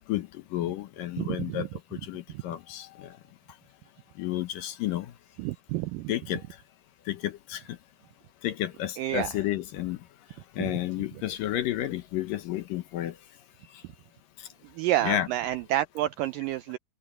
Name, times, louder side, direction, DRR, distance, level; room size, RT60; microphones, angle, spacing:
voice 1, 0.1-1.7 2.1-3.1 4.2-5.1 6.1-6.4 7.1-7.6 8.4-10.0 10.6-13.1 15.0-15.3, left 13 dB, 70° left, 2.4 m, -31 dB
voice 2, 1.2-1.7 2.3-2.4 5.4-6.1 9.0-9.3 10.6-10.7 14.8-16.8, right 14 dB, 85° right, 1.9 m, -29 dB
omnidirectional pair, 4.6 m